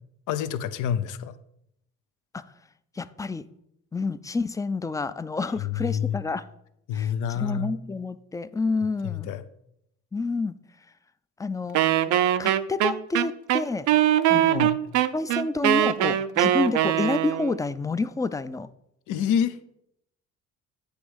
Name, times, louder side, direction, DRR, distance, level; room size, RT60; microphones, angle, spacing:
voice 1, 0.3-1.3 5.6-6.2 6.9-7.7 9.0-9.5 14.3-14.8 19.1-19.6, left 8 dB, 85° left, 12 dB, 0.6 m, -28 dB
voice 2, 3.0-3.5 3.9-6.5 6.9-9.3 10.1-10.6 11.4-11.8 12.4-13.9 14.3-14.7 15.1-18.7, left 3 dB, 10° left, 14 dB, 0.3 m, -29 dB
Wind instrument woodwind instrument, 11.7-17.6, right 12 dB, 75° right, 0.5 m, -22 dB
8.2 x 3.4 x 6.2 m, 0.78 s
cardioid pair, 90°, 30 cm